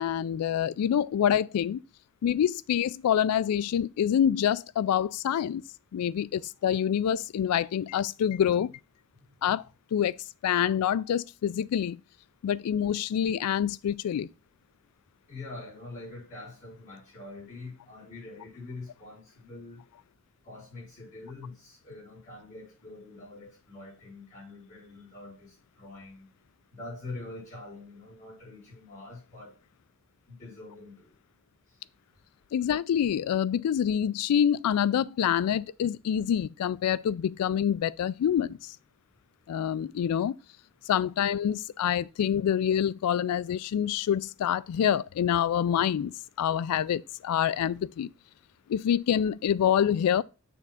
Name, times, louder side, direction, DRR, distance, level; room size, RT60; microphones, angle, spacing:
voice 1, 0.0-1.8 2.2-5.6 5.9-8.7 9.4-9.6 9.9-10.2 10.4-12.0 12.4-14.3 32.5-38.8 39.5-40.3 40.9-46.1 46.4-48.1 48.7-50.2, left 9 dB, 90° left, 0.3 m, -26 dB
voice 2, 15.3-19.8 20.4-26.2 26.7-29.6 30.3-31.1, left 2 dB, 35° left, 4.6 m, -44 dB
6.9 x 3.6 x 5.7 m
head